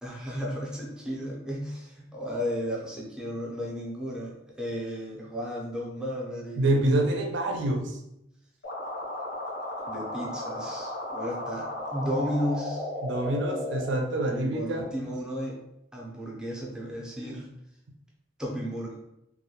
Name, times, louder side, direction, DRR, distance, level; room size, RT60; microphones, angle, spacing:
voice 1, 0.0-7.2 9.8-12.9 14.3-15.6 15.9-17.5 18.4-19.0, equal, 5° right, -4 dB, 0.5 m, -34 dB
voice 2, 6.6-8.0 13.0-14.9, right 1 dB, 65° right, 3 dB, 0.4 m, -26 dB
sound 1, 8.6-13.9, left 1 dB, 65° left, 0.8 m, -35 dB
2.2 x 2.1 x 2.8 m, 0.82 s
head